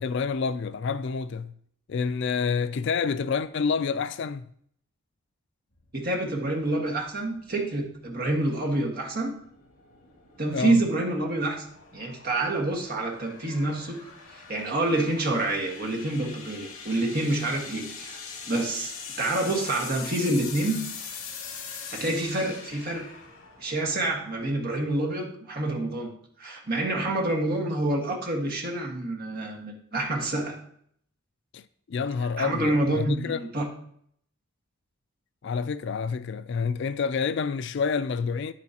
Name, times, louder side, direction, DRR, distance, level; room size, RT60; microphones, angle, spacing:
voice 1, 0.0-1.5 1.9-4.4 10.5-10.8 31.5-31.6 31.9-33.4 35.4-38.5, left 5 dB, 55° left, 0.3 m, -28 dB
sound 1, 5.8-24.9, left 5 dB, 70° left, 2.3 m, -43 dB
voice 2, 5.9-9.3 10.4-11.7 11.9-18.2 18.5-20.8 21.9-23.0 23.6-26.1 26.4-30.6 32.4-33.7, right 2 dB, 45° right, 1.5 m, -27 dB
9.6 x 8.5 x 2.9 m
head